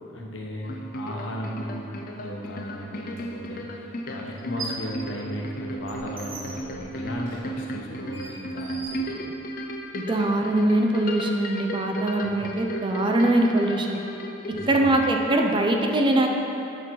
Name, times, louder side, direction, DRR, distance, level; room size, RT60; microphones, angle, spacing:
voice 1, 0.1-9.1 12.2-12.3 14.5-15.0, equal, 75° left, -1 dB, 0.9 m, -36 dB
sound 1, 0.6-14.8, equal, 45° left, 0.4 m, -35 dB
sound 2, 3.1-3.2 4.3-4.9 5.3-9.7, right 3 dB, 85° right, 1.0 m, -41 dB
voice 2, 9.9-14.0 14.7-16.3, right 1 dB, 25° right, 2 dB, 0.4 m, -22 dB
6.9 x 4.3 x 4.5 m, 2.9 s
head